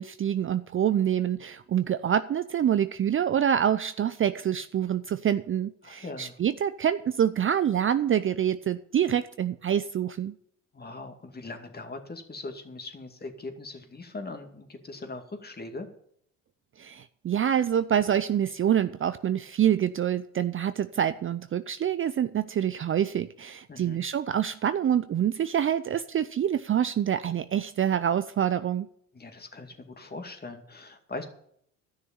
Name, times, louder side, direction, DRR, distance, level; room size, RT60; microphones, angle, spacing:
voice 1, 0.0-10.3 16.8-28.9, right 9 dB, 35° right, 12 dB, 0.6 m, -26 dB
voice 2, 5.8-6.4 10.7-15.9 23.7-24.0 29.1-31.3, left 3 dB, 25° left, 5 dB, 2.3 m, -40 dB
12.5 x 6.5 x 8.8 m, 0.68 s
supercardioid pair, 75°, 38 cm